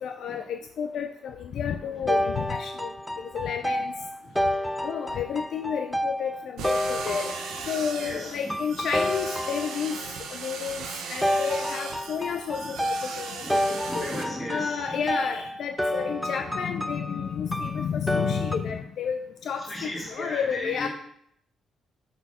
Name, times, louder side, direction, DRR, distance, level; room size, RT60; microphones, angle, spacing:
voice 1, 0.0-2.9 3.2-3.9 4.8-7.4 7.7-14.1 14.5-20.9, left 7 dB, 70° left, 5 dB, 0.5 m, -31 dB
sound 1, 2.1-7.8 8.5-10.1 11.2-18.6, equal, ahead, 0.4 m, -30 dB
sound 2, 6.6-14.2, right 5 dB, 85° right, 0.8 m, -38 dB
voice 2, 8.0-8.4 12.6-12.7 13.4-15.0 19.7-20.9, left 1 dB, 20° left, -2 dB, 2.3 m, -36 dB
6.9 x 4.1 x 4.3 m, 0.67 s
cardioid pair, 90°, 0 cm